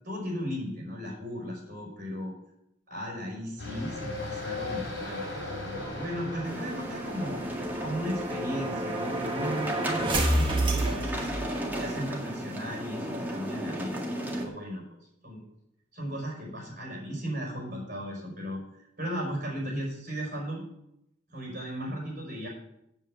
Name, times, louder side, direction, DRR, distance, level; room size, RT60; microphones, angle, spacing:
voice 1, 0.0-2.3 2.9-7.4 7.8-11.3 11.8-14.0 14.3-14.8 15.2-15.4 15.9-18.6 19.0-20.6 21.3-22.5, equal, 40° right, -2 dB, 5.2 m, -36 dB
sound 1, 3.6-13.9, left 3 dB, 70° left, 4.4 m, -41 dB
sound 2, 5.2-12.0, right 1 dB, 25° right, 1.6 m, -31 dB
sound 3, 6.4-14.5, equal, 10° right, 1.9 m, -35 dB
9.1 x 7.6 x 8.0 m, 0.81 s
head